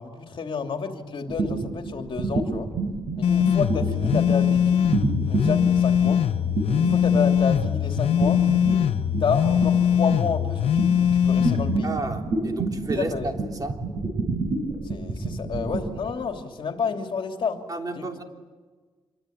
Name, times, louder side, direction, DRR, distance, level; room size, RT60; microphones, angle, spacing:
voice 1, 0.0-2.7 3.2-4.9 5.3-6.2 6.8-8.4 9.2-11.9 13.0-13.3 14.8-17.6 17.9-18.1, left 5 dB, 60° left, 4 dB, 3.1 m, -30 dB
sound 1, 1.3-16.1, right 3 dB, 60° right, 6.9 m, -29 dB
sound 2, 3.2-11.8, left 9 dB, 75° left, 0.9 m, -21 dB
voice 2, 11.8-13.8 17.7-18.2, right 2 dB, 40° right, 3 dB, 3.3 m, -32 dB
27.0 x 24.0 x 9.0 m, 1.4 s
wide cardioid pair, 110°, 10 cm